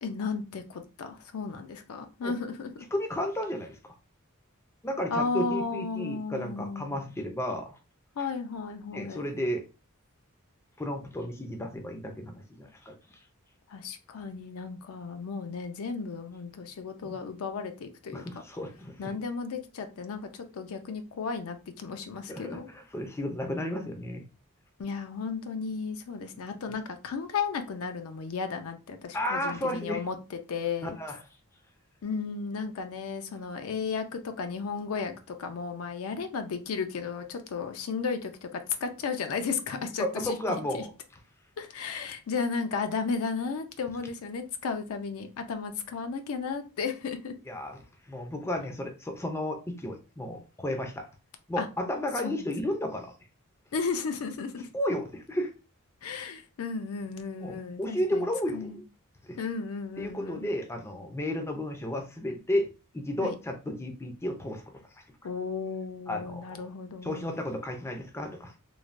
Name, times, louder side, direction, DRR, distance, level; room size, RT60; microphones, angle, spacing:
voice 1, 0.0-2.9 5.1-7.0 8.2-9.2 13.7-18.2 19.0-22.7 24.8-31.0 32.0-40.8 41.6-47.3 51.6-51.7 52.2-52.4 53.7-54.7 56.0-58.8 59.4-60.5 63.2-63.3 65.2-67.3, left 5 dB, 70° left, 7 dB, 0.4 m, -34 dB
voice 2, 2.9-3.8 4.8-7.8 8.9-9.6 10.8-13.2 17.0-17.2 18.1-19.1 22.3-24.2 29.1-30.0 30.8-31.2 40.0-40.9 47.5-47.8 48.1-51.0 51.5-53.1 54.7-55.5 57.4-58.8 59.2-59.4 60.0-62.7 62.9-64.6 66.1-66.7 67.0-68.5, left 1 dB, 10° left, 3 dB, 0.4 m, -33 dB
3.2 x 2.1 x 2.5 m, 0.31 s
head